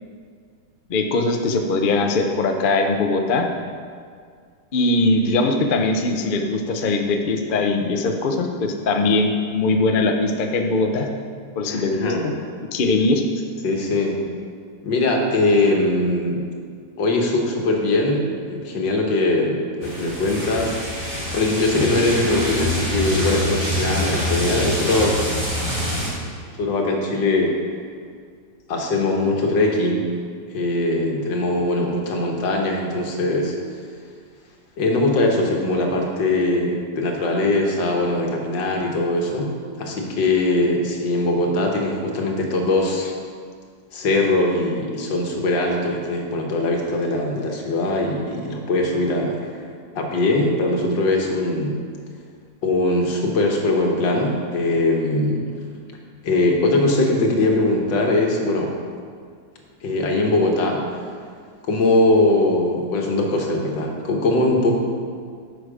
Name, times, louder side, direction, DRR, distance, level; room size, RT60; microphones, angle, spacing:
voice 1, 0.9-3.5 4.7-11.1 11.6-12.3 12.7-13.2, left 3 dB, 55° left, 3 dB, 0.6 m, -21 dB
voice 2, 11.7-12.2 13.6-14.2 14.8-16.4 17.0-20.8 21.3-25.2 26.6-27.5 28.7-30.0 30.5-33.5 34.8-39.5 39.8-43.1 43.9-49.5 50.0-51.8 52.6-55.4 56.2-58.7 59.8-60.8 61.7-64.8, left 2 dB, 85° left, 0 dB, 1.9 m, -21 dB
sound 1, 19.8-26.1, left 1 dB, 20° right, 2.3 m, -25 dB
9.3 x 6.4 x 4.9 m, 2.1 s
omnidirectional pair, 1.9 m